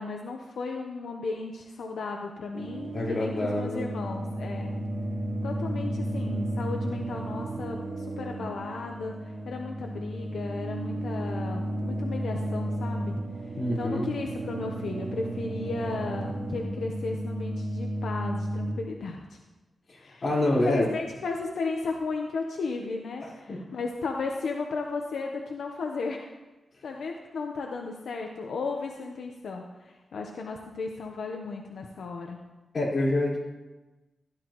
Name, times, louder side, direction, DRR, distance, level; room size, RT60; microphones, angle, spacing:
voice 1, 0.0-4.7 5.4-13.2 13.8-19.4 20.0-20.2 20.5-26.3 26.8-32.4, left 4 dB, 85° left, 1 dB, 1.0 m, -35 dB
sound 1, 2.5-18.7, right 1 dB, 45° right, 1.6 m, -33 dB
voice 2, 2.9-3.8 13.6-14.1 19.9-20.9 23.2-23.6 32.7-33.4, left 1 dB, 45° left, -7 dB, 4.6 m, -27 dB
16.0 x 12.0 x 3.1 m, 1.1 s
wide cardioid pair, 125°, 0 cm